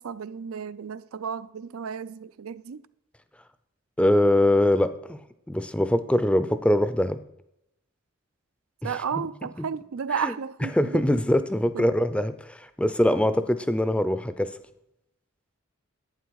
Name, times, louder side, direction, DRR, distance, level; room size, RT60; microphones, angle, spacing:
voice 1, 0.0-2.8 8.8-11.0 11.7-11.9, right 6 dB, 85° right, 0.5 m, -33 dB
voice 2, 4.0-5.2 5.5-7.2 8.8-9.3 10.2-10.3 10.7-14.5, left 1 dB, 5° left, 0.4 m, -23 dB
11.5 x 9.0 x 4.7 m
head